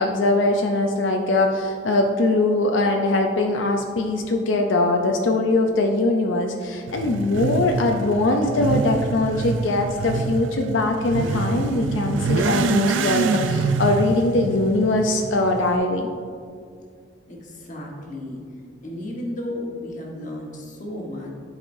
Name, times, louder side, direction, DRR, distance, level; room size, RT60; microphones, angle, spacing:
voice 1, 0.0-16.1, left 2 dB, 85° left, 2 dB, 0.6 m, -21 dB
Motorcycle / Accelerating revving vroom, 6.9-15.8, right 4 dB, 90° right, 0.4 m, -26 dB
voice 2, 17.3-18.4 18.8-21.3, left 1 dB, 40° left, -1 dB, 1.3 m, -33 dB
11.5 x 4.9 x 2.6 m, 2.2 s
head